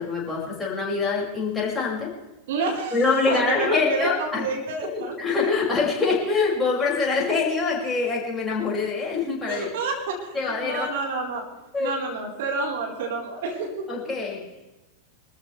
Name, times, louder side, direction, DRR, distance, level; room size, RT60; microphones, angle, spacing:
voice 1, 0.0-2.2 2.9-4.5 4.8-9.7 10.3-10.9 11.7-12.0 13.9-14.5, left 4 dB, 15° left, -4 dB, 6.1 m, -25 dB
voice 2, 2.5-3.0 3.3-5.3 9.5-11.5 11.8-13.9, right 3 dB, 55° right, 0 dB, 4.3 m, -29 dB
25.0 x 14.0 x 3.4 m, 1.1 s
figure-of-eight pair, 90°, 0 cm